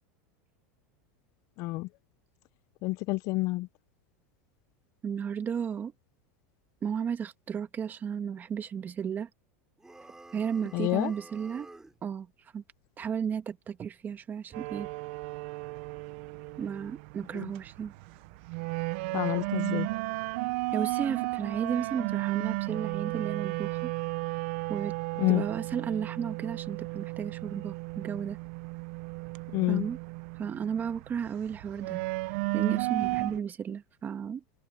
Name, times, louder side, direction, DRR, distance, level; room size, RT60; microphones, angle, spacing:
voice 1, 1.6-1.9 2.8-3.7 10.7-11.1 17.3-17.5 19.1-19.9 25.2-25.4 29.5-29.9, left 20 dB, 45° left, 0.5 m, -28 dB
voice 2, 5.0-5.9 6.8-9.3 10.3-11.7 12.0-12.6 13.0-14.9 16.6-17.9 20.7-23.9 24.7-25.0 25.3-28.4 29.7-30.0 30.4-32.0 32.5-34.4, right 7 dB, 25° right, 1.7 m, -34 dB
sound 1, 9.8-12.0, right 2 dB, 5° right, 5.9 m, -50 dB
sound 2, 14.5-33.4, right 23 dB, 60° right, 0.7 m, -34 dB
supercardioid pair, 135°, 7 cm